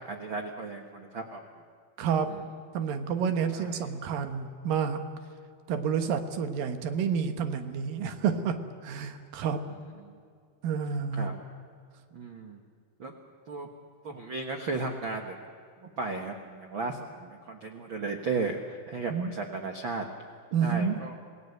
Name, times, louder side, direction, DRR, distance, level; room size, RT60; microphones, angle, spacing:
voice 1, 0.0-1.4 2.3-2.4 3.5-3.9 10.0-10.2 11.1-11.3 12.1-12.6 13.0-13.1 13.5-13.7 14.0-15.4 15.8-20.0 20.6-21.1, right 3 dB, 90° right, 4 dB, 1.1 m, -35 dB
voice 2, 2.0-2.3 2.7-5.0 5.7-8.6 8.8-9.6 10.6-11.3 19.1-19.3 20.5-21.0, right 6 dB, 65° right, 8 dB, 2.8 m, -29 dB
27.5 x 17.5 x 8.0 m, 2.3 s
omnidirectional pair, 4.7 m